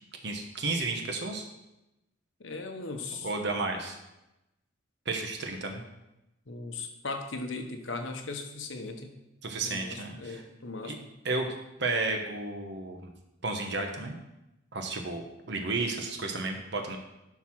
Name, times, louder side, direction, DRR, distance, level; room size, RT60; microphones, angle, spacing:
voice 1, 0.2-1.5 3.2-4.0 5.1-5.8 9.4-10.4 10.8-11.0 11.2-11.5 11.8-13.1 13.4-14.2 14.7-17.0, right 3 dB, 60° right, 3 dB, 1.2 m, -32 dB
voice 2, 2.4-3.3 6.5-9.1 9.6-10.9, left 3 dB, 80° left, 4 dB, 1.3 m, -38 dB
11.0 x 4.7 x 6.2 m, 0.93 s
head